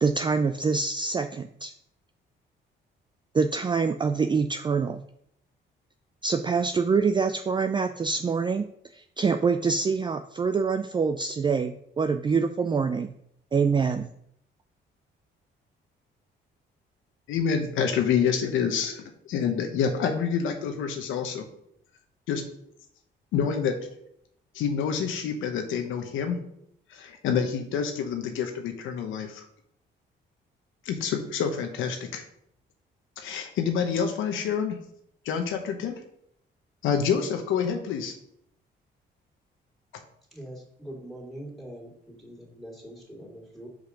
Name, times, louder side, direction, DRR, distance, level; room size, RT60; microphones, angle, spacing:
voice 1, 0.0-1.7 3.3-5.0 6.2-13.1 13.5-14.1, right 5 dB, 25° right, 8 dB, 0.3 m, -25 dB
voice 2, 17.3-21.5 22.3-22.4 23.3-23.8 24.5-26.4 26.9-29.4 30.8-32.2 33.2-34.8 35.2-36.0 36.8-38.1, left 7 dB, 90° left, 5 dB, 0.9 m, -27 dB
voice 3, 40.3-43.7, right 1 dB, ahead, -2 dB, 2.8 m, -43 dB
5.2 x 5.1 x 5.1 m, 0.71 s
cardioid pair, 90°, 20 cm